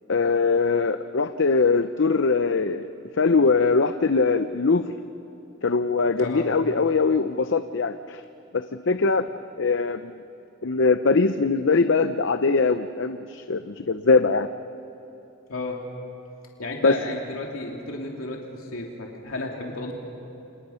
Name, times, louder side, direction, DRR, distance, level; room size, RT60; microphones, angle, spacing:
voice 1, 0.1-2.9 3.2-4.9 5.6-8.2 8.5-9.3 9.6-10.2 10.6-14.5 16.8-16.9, left 4 dB, 60° left, 10 dB, 0.7 m, -22 dB
voice 2, 6.2-6.5 15.5-15.8 16.6-19.9, left 2 dB, 90° left, 0 dB, 2.8 m, -32 dB
28.5 x 26.5 x 5.7 m, 2.9 s
head